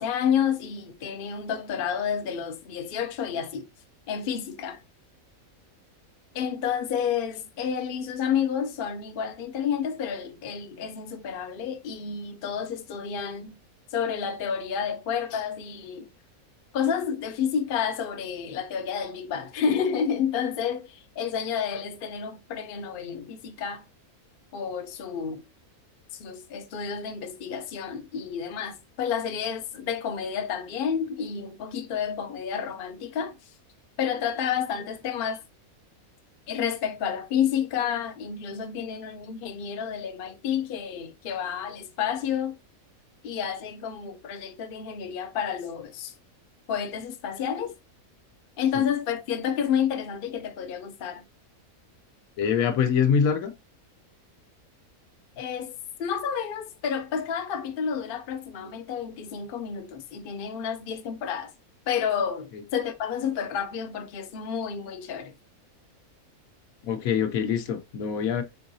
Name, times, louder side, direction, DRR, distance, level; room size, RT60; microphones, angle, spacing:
voice 1, 0.0-3.7 4.1-4.8 6.3-13.5 13.9-16.1 16.7-23.8 24.5-25.4 26.1-33.3 34.0-35.4 36.5-42.5 43.2-46.1 46.7-47.7 48.6-51.2 55.4-61.5 61.9-65.3, left 7 dB, 50° left, 0.7 m, -30 dB
voice 2, 52.4-53.5 66.8-68.4, left 7 dB, 75° left, 1.1 m, -24 dB
4.5 x 3.8 x 2.7 m
omnidirectional pair, 1.5 m